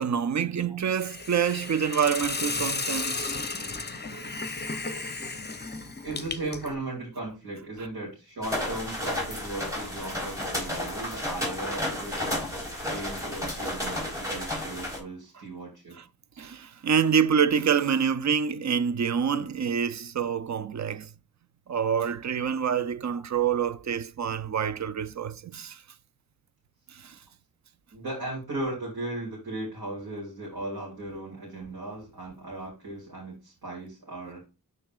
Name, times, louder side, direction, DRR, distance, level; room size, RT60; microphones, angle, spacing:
voice 1, 0.0-3.3 16.0-16.1 16.4-21.1 21.7-25.8 26.9-27.2, right 7 dB, 50° right, 0.5 m, -27 dB
Hiss, 0.9-6.7, left 3 dB, 25° left, 0.7 m, -34 dB
voice 2, 6.0-12.3 12.8-16.0 23.1-23.2 27.9-34.4, right 2 dB, 70° right, 2.4 m, -37 dB
sound 1, 8.4-15.0, left 1 dB, 10° right, 3.6 m, -32 dB
11.5 x 3.9 x 2.4 m
wide cardioid pair, 70°, 38 cm